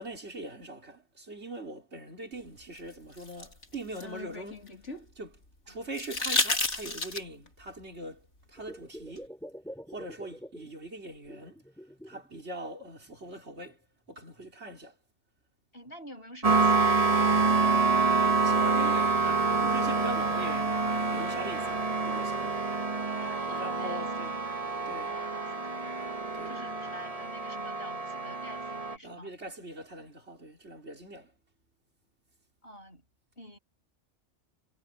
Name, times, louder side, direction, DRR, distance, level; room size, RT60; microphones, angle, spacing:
voice 1, 0.0-4.7 5.2-5.4 5.7-9.3 9.9-11.6 12.1-13.8 14.1-14.9 18.4-20.9 21.1-22.5 23.5-24.4 24.9-25.1 26.3-26.5 29.0-31.3, right 2 dB, 65° right, 4.2 m, -42 dB
sound 1, 2.8-5.0 5.9-7.5 9.2-9.3, left 2 dB, 75° left, 3.7 m, -31 dB
sound 2, 8.6-10.8 11.0-12.4 12.8-13.7 14.4-14.5, equal, ahead, 5.2 m, -47 dB
voice 2, 15.7-18.1 23.2-24.1 25.1-26.0 26.4-29.3 32.6-33.0 33.4-33.6, equal, 55° left, 7.3 m, -48 dB
sound 3, 16.4-29.0, right 4 dB, 30° right, 1.6 m, -27 dB
omnidirectional pair, 1.2 m